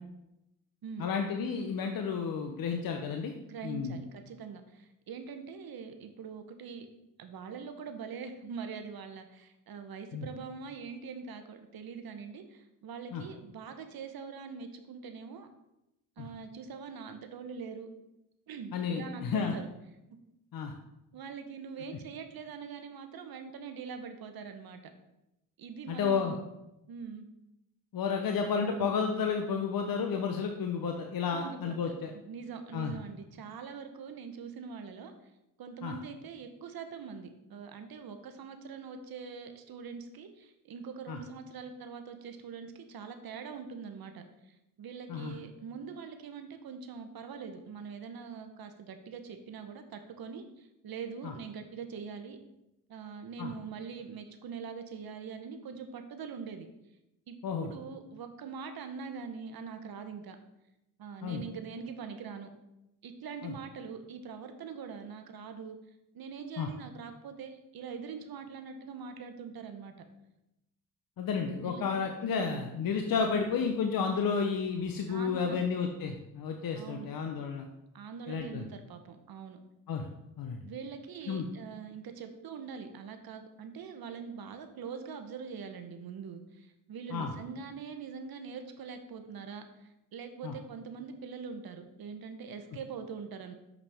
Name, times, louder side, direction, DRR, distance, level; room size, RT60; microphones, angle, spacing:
voice 1, 1.0-3.3 3.6-4.0 10.1-10.3 13.1-13.2 16.2-16.3 18.7-19.5 20.5-20.7 25.9-26.3 27.9-32.1 32.7-32.9 35.8-35.9 41.1-41.2 45.1-45.3 51.2-51.3 53.4-53.5 57.4-57.7 61.2-61.4 63.4-63.5 66.6-66.7 71.2-77.7 78.3-78.7 79.9-80.1 80.4-80.6 81.3-81.5 87.1-87.3 90.4-90.5, left 6 dB, 55° left, 4 dB, 0.8 m, -31 dB
voice 2, 3.5-6.9 7.2-15.5 16.2-17.9 18.5-19.7 21.1-24.8 25.6-26.4 26.9-27.3 31.3-35.1 35.6-52.4 52.9-56.7 57.3-60.4 61.0-62.5 63.0-65.8 66.1-70.1 71.6-72.1 72.3-72.7 75.1-75.6 76.7-77.1 77.9-79.6 80.6-93.5, right 6 dB, 60° right, 7 dB, 0.9 m, -43 dB
6.5 x 5.8 x 3.5 m, 0.90 s
supercardioid pair, 65°, 41 cm